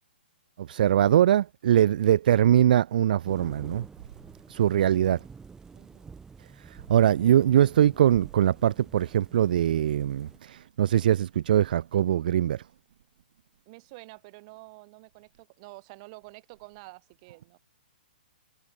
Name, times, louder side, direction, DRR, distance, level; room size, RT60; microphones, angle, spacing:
voice 1, 0.6-3.9 4.5-5.2 6.6-12.6, right 11 dB, 55° right, 0.3 m, -22 dB
sound 1, 3.3-10.4, right 5 dB, 10° right, 1.2 m, -49 dB
voice 2, 5.7-6.1 13.7-17.6, right 26 dB, 35° right, 3.0 m, -48 dB
hypercardioid pair, 135°, 6 cm